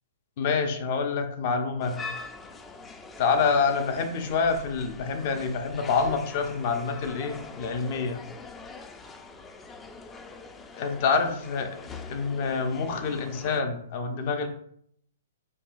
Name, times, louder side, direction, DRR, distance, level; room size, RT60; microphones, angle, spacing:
voice 1, 0.4-2.0 3.2-8.2 10.7-11.7 12.0-14.5, left 5 dB, 50° left, 7 dB, 0.7 m, -27 dB
sound 1, 1.8-13.6, left 4 dB, 15° left, 0.4 m, -43 dB
6.4 x 2.8 x 2.5 m, 0.67 s
hypercardioid pair, 125°, 0 cm